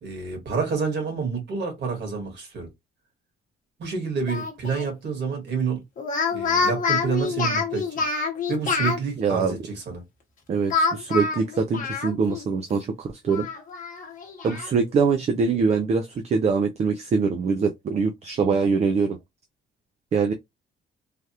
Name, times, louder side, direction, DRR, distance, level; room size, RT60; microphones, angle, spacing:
voice 1, 0.0-2.7 3.8-5.8 6.3-8.0 8.5-10.0, right 5 dB, 55° right, 1.7 m, -28 dB
Speech, 4.3-4.9 6.0-9.0 10.7-12.4 12.8-12.9 13.3-14.7, left 4 dB, 40° left, 1.0 m, -26 dB
voice 2, 9.2-9.6 10.5-13.5 14.4-19.2 20.1-20.3, right 5 dB, 30° right, 0.4 m, -23 dB
3.3 x 2.3 x 2.8 m
cardioid pair, 165°, 21 cm